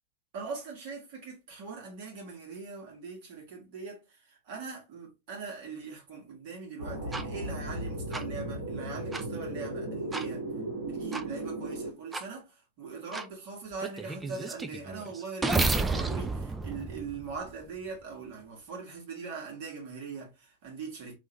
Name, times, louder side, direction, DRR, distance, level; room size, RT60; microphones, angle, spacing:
voice 1, 0.3-10.5 10.8-21.1, right 5 dB, 45° right, 1.5 m, -41 dB
sound 1, 6.8-11.9, right 1 dB, 60° right, 1.3 m, -36 dB
sound 2, 7.1-7.2 8.1-8.2 9.1-9.2 10.1-10.3 11.1-11.2 12.1-12.2 13.1-13.3 13.8-17.7, right 3 dB, 10° right, 0.4 m, -31 dB
3.1 x 2.6 x 3.1 m
figure-of-eight pair, 90°, 0 cm